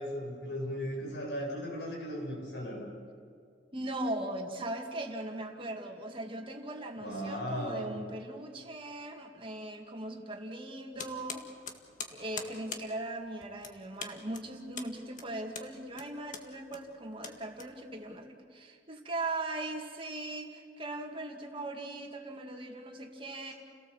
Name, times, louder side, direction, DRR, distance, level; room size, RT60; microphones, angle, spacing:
voice 1, 0.0-2.9 7.0-8.0, equal, 85° left, -1 dB, 7.8 m, -37 dB
voice 2, 3.7-11.4 12.1-23.5, right 2 dB, 30° right, 2 dB, 2.3 m, -39 dB
sound 1, 11.0-18.2, left 5 dB, 50° left, 1.8 m, -44 dB
29.5 x 18.0 x 7.4 m, 2.2 s
head